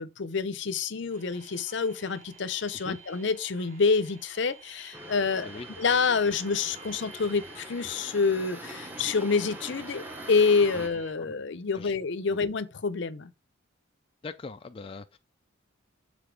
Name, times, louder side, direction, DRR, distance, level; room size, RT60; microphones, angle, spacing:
voice 1, 0.0-5.5 5.8-13.3, left 4 dB, 60° left, 0.6 m, -27 dB
sound 1, 1.1-11.1, right 5 dB, 40° right, 2.3 m, -51 dB
sound 2, 4.9-10.9, equal, 10° right, 0.9 m, -43 dB
voice 2, 14.2-15.2, left 4 dB, 25° left, 0.3 m, -41 dB
7.0 x 3.9 x 4.7 m
head